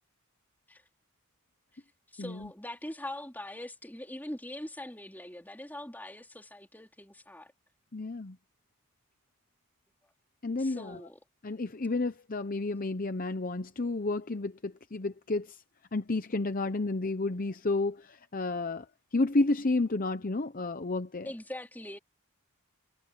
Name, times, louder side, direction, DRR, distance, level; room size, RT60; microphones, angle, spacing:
voice 1, 2.1-7.5 10.6-11.2 21.2-22.0, left 1 dB, 10° left, 3.4 m, -42 dB
voice 2, 7.9-8.4 10.4-11.0 11.4-15.6 15.9-18.9 19.1-21.3, left 2 dB, 40° left, 0.7 m, -31 dB
head